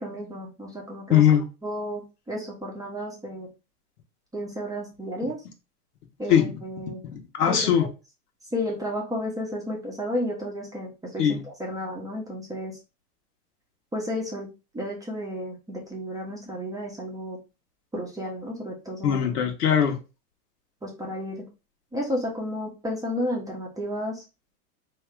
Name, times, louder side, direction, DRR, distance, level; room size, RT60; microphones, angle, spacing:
voice 1, 0.0-1.2 1.6-3.5 4.3-5.4 6.2-7.0 7.5-7.7 8.5-11.2 11.6-12.7 13.9-14.5 14.7-17.4 17.9-19.2 20.8-21.4 21.9-24.1, equal, 5° right, 1.0 m, -32 dB
voice 2, 1.1-1.4 6.3-6.5 7.1-7.9 11.2-11.4 19.0-20.0, left 9 dB, 80° left, 1.3 m, -20 dB
3.6 x 2.9 x 3.4 m
hypercardioid pair, 130°, 46 cm